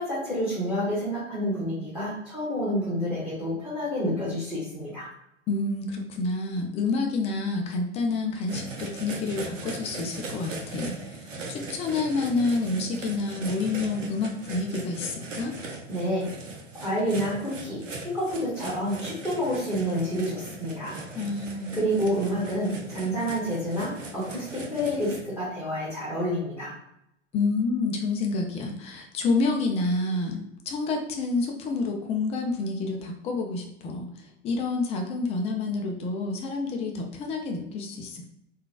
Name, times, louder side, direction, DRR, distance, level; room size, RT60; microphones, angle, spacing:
voice 1, 0.0-5.1 15.9-16.3 16.7-21.0 21.7-26.7, equal, 5° right, -11 dB, 1.3 m, -29 dB
voice 2, 5.5-11.2 11.5-15.5 21.1-21.8 27.3-30.4 30.7-34.1 34.4-38.2, left 3 dB, 15° left, 2 dB, 0.4 m, -28 dB
sound 1, 8.5-25.2, right 3 dB, 80° right, 0.7 m, -39 dB
3.8 x 2.4 x 2.3 m, 0.80 s
figure-of-eight pair, 95°, 38 cm